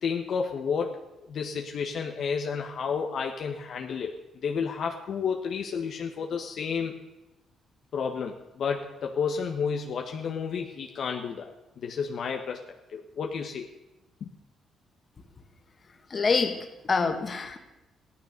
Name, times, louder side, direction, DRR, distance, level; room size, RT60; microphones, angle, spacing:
voice 1, 0.0-1.0 1.3-4.1 4.4-7.0 7.9-12.6 12.9-13.7 14.2-14.3, left 6 dB, 60° left, 2 dB, 1.4 m, -31 dB
voice 2, 16.1-17.6, left 4 dB, 35° left, 5 dB, 2.2 m, -26 dB
16.0 x 13.0 x 6.7 m, 0.99 s
cardioid pair, 90°, 0 cm